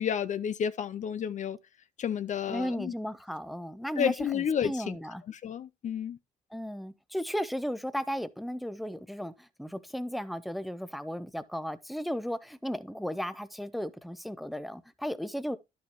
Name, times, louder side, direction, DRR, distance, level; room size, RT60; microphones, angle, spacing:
voice 1, 0.0-1.6 2.0-2.9 4.0-5.0 5.3-6.2, left 8 dB, 50° left, 0.6 m, -31 dB
voice 2, 2.5-5.2 6.5-15.6, equal, ahead, 0.7 m, -35 dB
11.0 x 7.1 x 3.0 m
cardioid pair, 80°, 16 cm